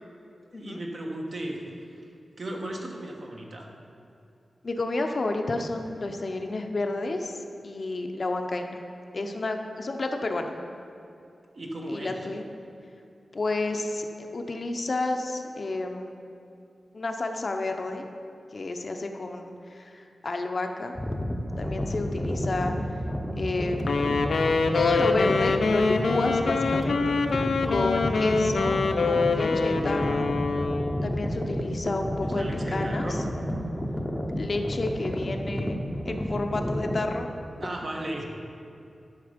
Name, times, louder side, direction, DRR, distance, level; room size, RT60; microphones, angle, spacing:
voice 1, 0.5-1.9 2.4-3.7 11.5-12.2 32.2-33.3 37.6-38.2, right 1 dB, 50° right, 0 dB, 1.4 m, -36 dB
voice 2, 4.6-8.8 9.1-10.6 11.9-12.4 13.3-16.2 16.9-18.1 18.5-21.0 21.6-22.7 23.4-24.1 24.7-27.2 27.7-30.3 31.0-32.4 32.7-33.2 34.4-35.8 36.0-37.3, left 2 dB, 45° left, 4 dB, 0.7 m, -30 dB
sound 1, 20.9-37.0, equal, 10° left, 0.8 m, -31 dB
Wind instrument woodwind instrument, 23.8-31.0, left 4 dB, 80° left, 0.6 m, -25 dB
11.5 x 6.5 x 5.1 m, 2.6 s
wide cardioid pair, 115°, 0 cm